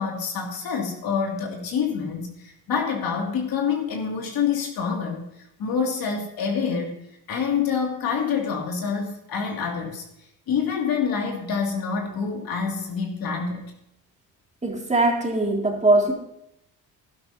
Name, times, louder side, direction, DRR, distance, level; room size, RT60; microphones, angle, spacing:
voice 1, 0.0-5.3 5.6-7.0 7.3-10.0 10.5-13.6, left 6 dB, 65° left, 1 dB, 2.4 m, -26 dB
voice 2, 14.6-16.1, right 2 dB, 20° right, 1 dB, 2.1 m, -21 dB
12.0 x 11.0 x 2.7 m, 0.80 s
supercardioid pair, 80°, 38 cm